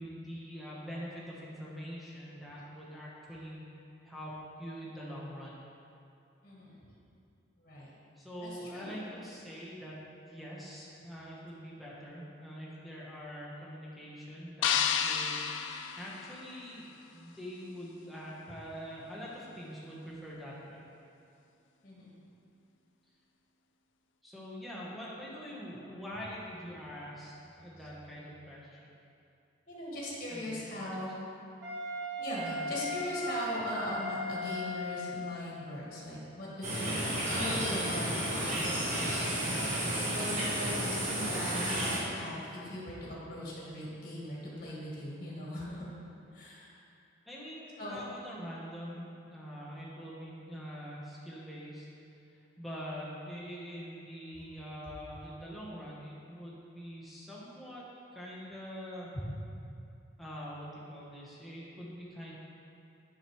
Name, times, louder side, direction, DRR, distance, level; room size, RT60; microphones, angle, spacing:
voice 1, 0.0-3.7 4.0-5.7 8.2-10.0 10.3-16.8 17.1-20.8 24.2-28.9 30.3-30.9 32.4-32.7 47.3-51.9 52.6-57.9 58.1-59.1 60.2-62.4, equal, ahead, -6 dB, 1.0 m, -44 dB
voice 2, 6.4-6.8 7.6-7.9 8.4-9.0 18.5-18.6 21.8-22.1 26.1-26.2 27.8-27.9 29.7-31.1 32.2-39.6 40.1-45.9 46.3-46.7 47.8-48.0 59.1-59.2, left 1 dB, 45° left, -6 dB, 1.5 m, -40 dB
sound 1, 14.6-16.9, left 8 dB, 75° left, 0.3 m, -31 dB
Wind instrument woodwind instrument, 31.6-35.4, left 1 dB, 65° right, 1.0 m, -37 dB
sound 2, 36.6-42.0, right 1 dB, 40° right, 1.4 m, -32 dB
7.5 x 6.0 x 3.1 m, 2.6 s
head